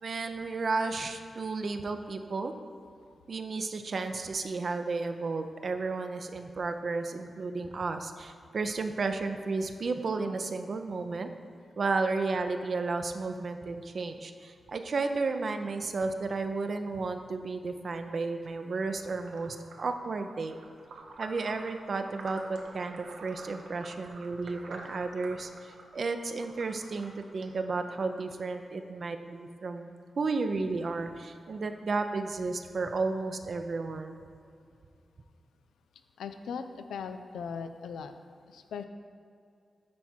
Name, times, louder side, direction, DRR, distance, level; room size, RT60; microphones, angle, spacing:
voice 1, 0.0-2.5 3.3-11.3 11.8-20.6 21.2-34.2, right 3 dB, 65° right, 6 dB, 0.6 m, -33 dB
sound 1, 19.0-28.3, right 3 dB, 90° right, 0.9 m, -49 dB
voice 2, 36.2-38.1 38.5-38.8, left 6 dB, 90° left, 9 dB, 0.3 m, -39 dB
9.5 x 4.5 x 4.4 m, 2.5 s
supercardioid pair, 45°, 0 cm